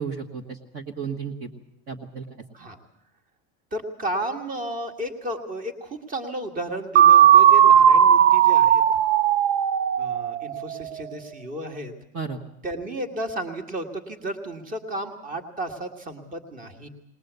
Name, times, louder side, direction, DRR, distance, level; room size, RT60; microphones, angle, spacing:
voice 1, 0.0-1.5 1.9-2.3 12.1-12.4, right 6 dB, 35° right, 1 dB, 1.6 m, -33 dB
voice 2, 3.7-8.8 10.0-11.9 12.6-16.9, right 1 dB, 20° right, 6 dB, 1.8 m, -33 dB
sound 1, 7.0-10.8, right 9 dB, 65° right, 0.9 m, -16 dB
20.5 x 20.0 x 8.2 m, 0.81 s
supercardioid pair, 160°, 40 cm